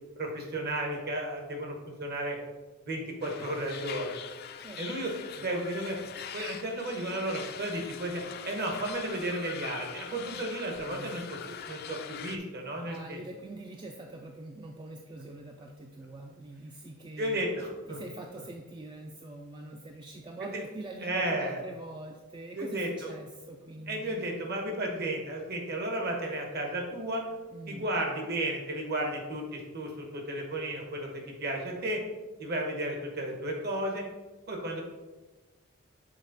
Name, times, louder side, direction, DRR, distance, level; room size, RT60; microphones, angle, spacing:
voice 1, 0.2-2.4 2.8-4.1 4.8-5.1 5.4-6.0 6.3-11.4 11.7-13.2 17.2-18.0 20.4-20.6 21.0-21.6 22.5-23.1 23.9-27.2 27.7-32.0 32.4-34.0 34.5-34.8, right 1 dB, 50° right, 1 dB, 1.2 m, -33 dB
sound 1, 3.2-12.4, left 8 dB, 50° left, 0.4 m, -43 dB
voice 2, 10.9-11.2 12.8-17.4 17.9-24.3 24.9-25.1 27.5-27.9, right 2 dB, 20° right, 2 dB, 0.4 m, -44 dB
6.2 x 4.3 x 4.0 m, 1.2 s
head